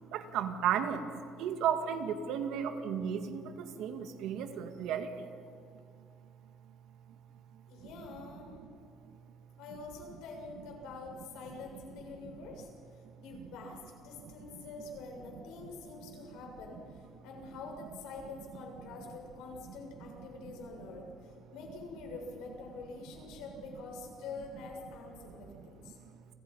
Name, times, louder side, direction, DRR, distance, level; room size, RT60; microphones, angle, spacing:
voice 1, 0.1-1.1 1.4-5.3 12.2-12.4 13.3-13.5 14.5-14.6 25.5-25.6, right 8 dB, 70° right, 7 dB, 2.1 m, -34 dB
voice 2, 7.7-8.6 9.6-26.0, left 4 dB, 85° left, 1 dB, 7.1 m, -46 dB
30.0 x 26.0 x 5.7 m, 2.3 s
cardioid pair, 150°, 0 cm